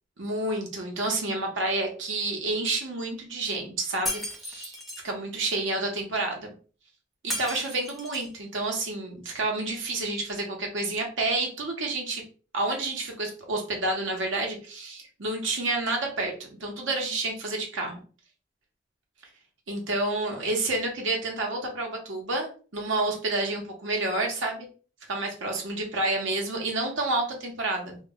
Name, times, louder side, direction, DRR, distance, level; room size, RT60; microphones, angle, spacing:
voice 1, 0.2-4.7 5.0-6.5 7.2-12.2 12.5-18.0 19.7-24.7 25.1-28.0, right 2 dB, 90° right, 1 dB, 0.8 m, -29 dB
Shatter, 4.1-5.0 7.3-8.4, left 1 dB, ahead, 0.5 m, -34 dB
2.3 x 2.0 x 3.5 m, 0.38 s
head